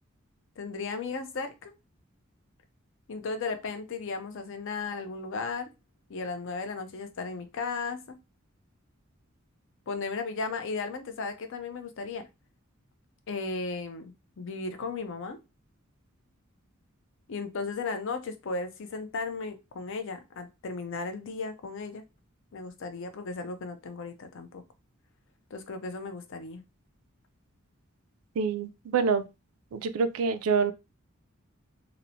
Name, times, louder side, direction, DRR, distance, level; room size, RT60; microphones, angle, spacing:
voice 1, 0.6-1.7 3.1-5.7 6.1-8.2 9.9-12.3 13.3-15.4 17.3-22.0 22.5-24.6 25.5-26.6, left 4 dB, 65° left, 0.5 m, -35 dB
voice 2, 28.4-29.3 29.7-30.7, right 5 dB, 90° right, 0.4 m, -26 dB
2.9 x 2.0 x 2.6 m
head